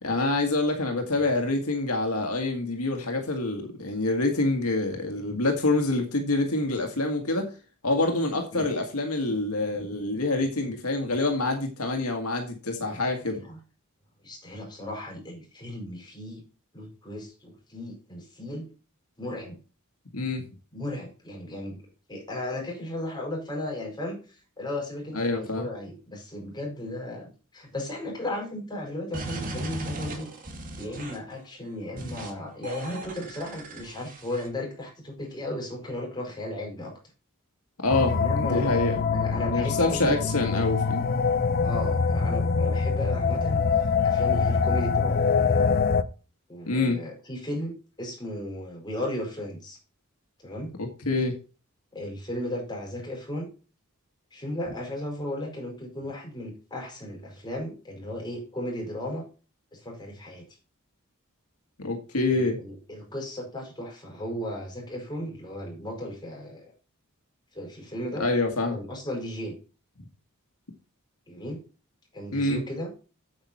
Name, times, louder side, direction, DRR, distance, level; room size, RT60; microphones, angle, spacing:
voice 1, 0.0-7.5 7.8-13.4 20.1-20.4 25.1-25.7 37.8-41.1 46.7-47.0 50.8-51.4 61.8-62.6 68.2-68.8 72.3-72.6, left 2 dB, 80° left, 4 dB, 1.9 m, -26 dB
voice 2, 14.2-16.4 16.7-18.6 19.2-19.6 20.7-21.8 22.1-24.2 24.6-30.3 30.8-36.9 38.1-40.6 41.6-45.3 46.5-49.8 50.4-50.7 51.9-53.5 54.3-59.3 59.7-60.4 62.3-66.7 67.5-68.3 68.7-69.5 71.3-71.6 72.1-72.9, left 1 dB, 20° left, 0 dB, 5.0 m, -35 dB
sound 1, 29.1-31.3 32.0-32.3 32.6-34.5, right 1 dB, 40° right, 2.4 m, -37 dB
sound 2, 37.9-46.0, left 5 dB, 45° left, 0.7 m, -24 dB
8.8 x 7.9 x 4.3 m, 0.34 s
head